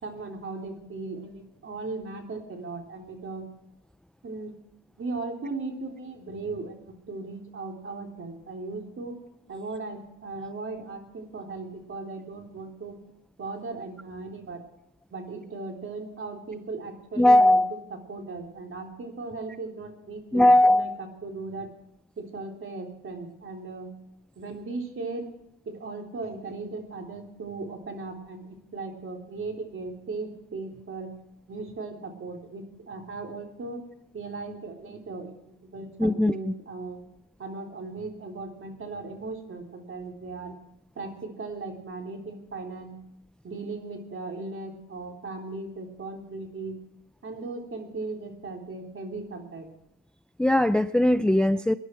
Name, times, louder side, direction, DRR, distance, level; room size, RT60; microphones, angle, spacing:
voice 1, 0.0-3.4 4.2-4.5 5.0-6.7 7.1-9.1 9.5-13.0 13.4-14.6 15.1-17.6 18.1-20.9 21.2-21.7 22.2-23.9 24.4-25.3 25.7-31.1 31.5-33.8 34.1-35.4 35.6-37.0 37.4-40.5 41.0-42.9 43.4-46.7 47.2-49.7, right 3 dB, 45° right, 2 dB, 3.6 m, -37 dB
voice 2, 17.2-17.7 20.3-20.9 36.0-36.5 50.4-51.7, left 1 dB, 5° left, 13 dB, 0.4 m, -19 dB
20.5 x 11.0 x 4.6 m, 0.82 s
cardioid pair, 90°, 30 cm